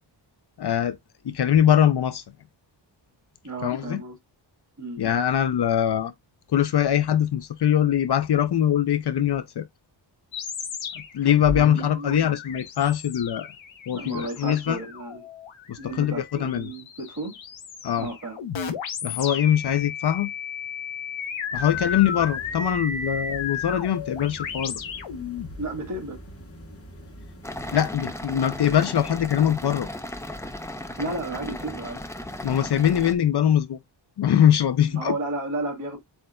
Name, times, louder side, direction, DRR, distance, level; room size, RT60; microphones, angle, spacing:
voice 1, 0.6-1.0 1.3-2.2 3.6-4.0 5.0-6.1 6.5-9.6 11.1-13.5 13.9-14.8 15.7-16.1 16.4-16.7 17.8-18.1 19.0-20.3 21.5-24.7 27.7-29.9 32.4-33.8 34.2-35.1, left 10 dB, 60° left, 0.6 m, -22 dB
voice 2, 3.4-4.2 4.8-5.0 11.5-12.4 13.9-15.2 15.8-17.3 18.0-18.4 25.6-26.2 31.0-32.0 34.8-36.0, right 2 dB, 40° right, 2.7 m, -33 dB
sound 1, 10.3-25.6, left 6 dB, 85° left, 1.0 m, -34 dB
sound 2, 21.5-27.8, equal, 30° left, 1.1 m, -44 dB
sound 3, 27.4-33.1, left 1 dB, 5° left, 0.5 m, -36 dB
7.7 x 2.6 x 2.2 m
wide cardioid pair, 165°, 45 cm